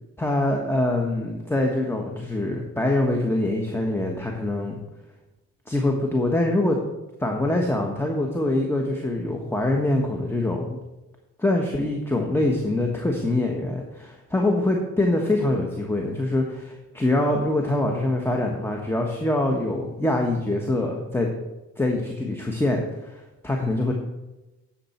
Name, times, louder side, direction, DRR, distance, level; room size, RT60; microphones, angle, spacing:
voice 1, 0.2-4.8 5.7-6.8 7.2-10.8 11.4-21.3 21.8-23.9, left 1 dB, 10° left, 2 dB, 1.3 m, -24 dB
10.0 x 7.1 x 4.4 m, 1.0 s
cardioid pair, 75°, 30 cm